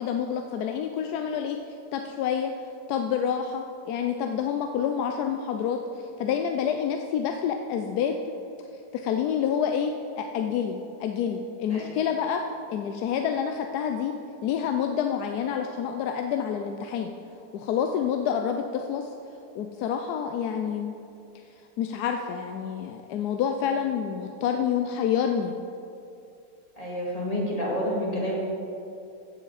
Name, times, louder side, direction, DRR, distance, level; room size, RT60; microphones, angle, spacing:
voice 1, 0.0-1.6 1.9-2.5 2.9-8.2 8.9-12.4 12.7-14.2 14.4-17.1 17.5-19.1 19.5-21.0 21.8-25.5, left 8 dB, 75° left, 4 dB, 1.0 m, -28 dB
voice 2, 26.8-28.3, equal, 20° left, -6 dB, 2.0 m, -29 dB
16.5 x 6.1 x 4.0 m, 2.6 s
omnidirectional pair, 1.9 m